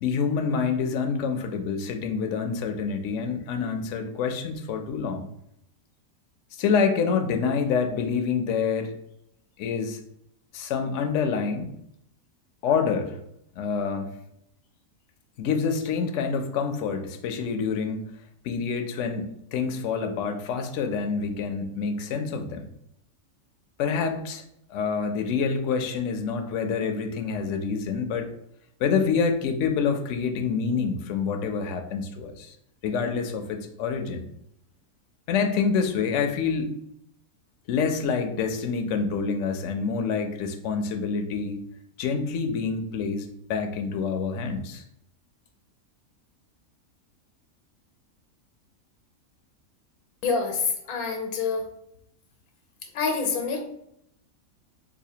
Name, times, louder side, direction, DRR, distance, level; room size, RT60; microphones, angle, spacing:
voice 1, 0.0-5.3 6.6-8.9 9.6-10.0 10.5-11.7 12.6-13.2 13.5-14.1 15.4-18.1 18.4-22.7 23.8-24.4 24.7-28.3 28.8-32.5 32.8-34.3 35.3-36.8 37.7-41.6 42.0-44.8, left 5 dB, 70° left, 6 dB, 0.8 m, -27 dB
voice 2, 50.2-51.7 52.9-53.6, left 5 dB, 90° left, 4 dB, 1.2 m, -27 dB
4.1 x 2.5 x 2.8 m, 0.75 s
omnidirectional pair, 1.5 m